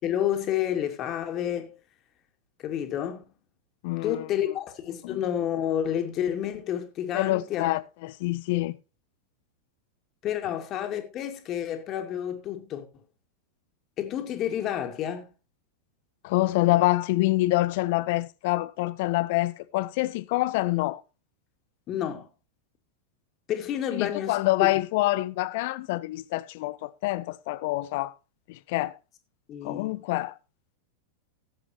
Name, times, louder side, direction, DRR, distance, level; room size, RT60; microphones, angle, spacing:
voice 1, 0.0-1.7 2.6-3.2 4.0-7.7 10.2-12.9 14.0-15.3 21.9-22.3 23.5-24.7 29.5-29.9, left 10 dB, 35° left, 2.2 m, -30 dB
voice 2, 3.8-4.3 5.0-5.2 7.1-8.8 16.2-21.0 23.9-28.1 28.5-29.0 29.6-30.3, left 18 dB, 50° left, 0.6 m, -26 dB
17.5 x 8.1 x 3.1 m
figure-of-eight pair, 90°, 0 cm